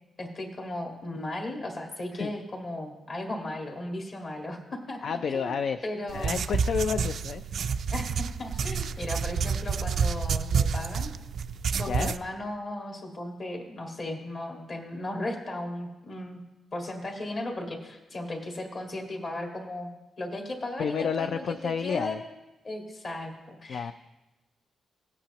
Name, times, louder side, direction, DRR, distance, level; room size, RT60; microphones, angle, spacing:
voice 1, 0.2-5.6 5.8-6.4 7.9-11.1 11.8-16.4 16.7-19.9 20.2-22.3 22.6-23.9, left 1 dB, 40° left, 1 dB, 1.8 m, -36 dB
voice 2, 5.0-5.8 6.1-7.4 11.9-12.1 20.8-22.2 23.7-23.9, left 6 dB, 60° left, 9 dB, 0.4 m, -30 dB
sound 1, 6.1-12.2, right 6 dB, 60° right, 0.3 m, -29 dB
17.0 x 8.5 x 3.0 m, 1.1 s
cardioid pair, 135°, 0 cm